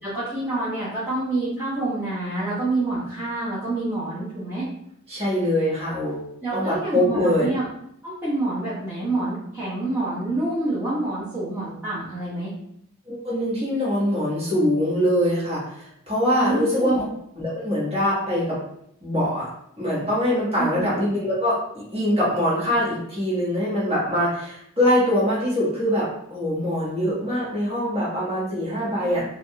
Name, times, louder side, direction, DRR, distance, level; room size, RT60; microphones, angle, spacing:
voice 1, 0.0-4.6 6.4-7.6 8.0-12.5 16.4-17.0 20.6-20.9 29.0-29.2, right 2 dB, 10° right, -13 dB, 0.8 m, -27 dB
voice 2, 5.1-7.5 13.1-17.1 17.3-18.6 19.0-19.5 19.8-29.2, equal, 25° right, -9 dB, 1.4 m, -23 dB
3.4 x 2.5 x 2.2 m, 0.74 s
head